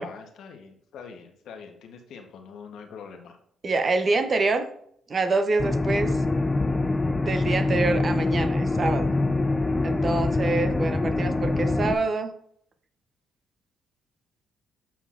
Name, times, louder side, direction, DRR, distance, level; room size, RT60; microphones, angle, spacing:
voice 1, 0.0-3.4, left 6 dB, 75° left, 4 dB, 0.9 m, -44 dB
voice 2, 3.6-4.7 5.1-6.2 6.8-6.9 7.2-9.1 9.8-12.3, right 3 dB, 40° right, 9 dB, 0.7 m, -26 dB
sound 1, 5.6-11.9, left 2 dB, 20° left, 0.4 m, -24 dB
7.1 x 5.8 x 2.4 m, 0.67 s
cardioid pair, 90°, 0 cm